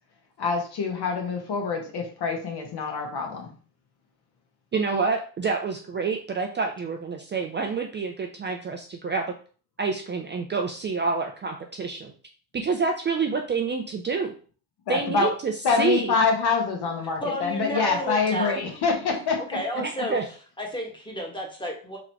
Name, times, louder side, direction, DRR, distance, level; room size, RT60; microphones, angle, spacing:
voice 1, 0.4-3.5 14.9-15.3 15.6-19.4, left 5 dB, 50° left, 2 dB, 1.5 m, -25 dB
voice 2, 4.7-9.2 9.8-12.1 12.5-14.3 14.9-16.1 17.7-17.8 19.8-20.2, right 4 dB, 25° right, 3 dB, 0.5 m, -28 dB
voice 3, 17.2-18.6 19.4-20.2 20.6-22.0, equal, 10° left, 0 dB, 1.5 m, -32 dB
3.8 x 3.0 x 4.5 m, 0.42 s
supercardioid pair, 90°, 48 cm